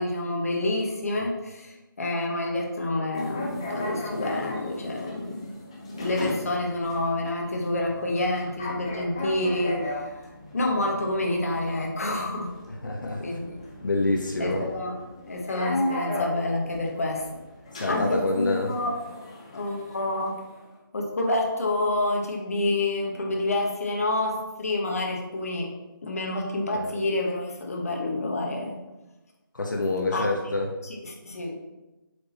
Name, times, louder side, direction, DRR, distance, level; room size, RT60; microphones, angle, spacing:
voice 1, 0.0-5.4 5.9-10.2 10.5-12.5 13.2-13.6 14.4-15.0 15.3-17.2 17.9-18.9 19.5-20.4 20.9-25.7 26.0-28.8 30.1-30.3 30.8-31.5, left 2 dB, 40° left, 0 dB, 1.4 m, -28 dB
sound 1, 3.1-20.7, left 1 dB, 15° left, 0.6 m, -37 dB
voice 2, 12.8-13.2 13.8-14.7 17.8-18.7 26.8-26.9 29.5-30.7, left 2 dB, 60° left, 0 dB, 1.2 m, -26 dB
8.3 x 5.2 x 4.3 m, 1.0 s
figure-of-eight pair, 170°, 12 cm